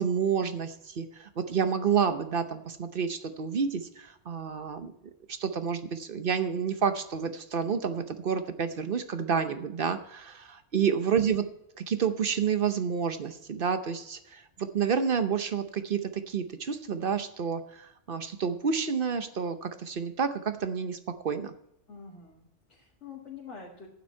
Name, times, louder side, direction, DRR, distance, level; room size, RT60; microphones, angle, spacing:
voice 1, 0.0-4.9 5.3-11.4 11.8-21.0 21.2-21.5, right 6 dB, 50° right, 9 dB, 0.9 m, -29 dB
voice 2, 21.9-23.9, left 5 dB, 70° left, -4 dB, 2.4 m, -46 dB
11.5 x 9.1 x 4.4 m, 0.79 s
omnidirectional pair, 1.2 m